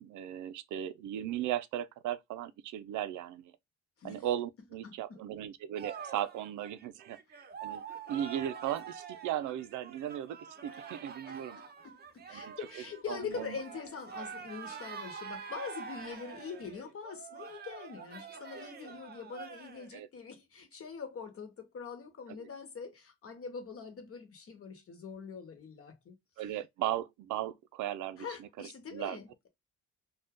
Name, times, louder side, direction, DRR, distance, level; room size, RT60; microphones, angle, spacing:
voice 1, 0.0-3.5 4.0-7.8 8.1-11.6 12.3-13.6 19.9-20.1 22.4-22.5 26.4-29.2, right 11 dB, 75° right, 0.5 m, -37 dB
voice 2, 4.8-5.2 11.3-26.5 28.2-29.5, left 6 dB, 45° left, 1.0 m, -44 dB
sound 1, 5.8-19.9, right 6 dB, 35° right, 0.6 m, -46 dB
2.6 x 2.3 x 3.5 m
cardioid pair, 90°, 30 cm